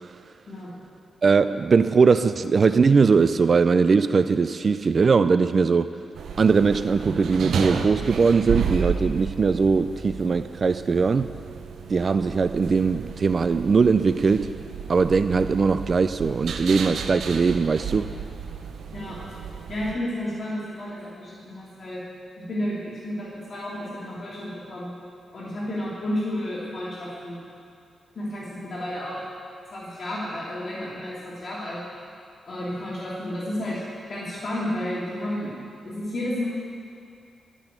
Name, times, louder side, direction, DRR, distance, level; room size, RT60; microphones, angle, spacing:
voice 1, 1.2-5.9 6.4-11.3 11.9-14.5 14.9-18.1, right 5 dB, 45° right, 12 dB, 0.4 m, -20 dB
sound 1, 6.1-19.9, right 6 dB, 75° right, 0.8 m, -33 dB
voice 2, 19.7-22.0 22.4-24.9 25.3-27.4 28.1-29.2 29.7-31.8 32.5-33.8 34.1-35.5 35.8-36.5, left 1 dB, 50° left, -7 dB, 2.9 m, -31 dB
14.5 x 6.2 x 8.9 m, 2.4 s
cardioid pair, 90°, 0 cm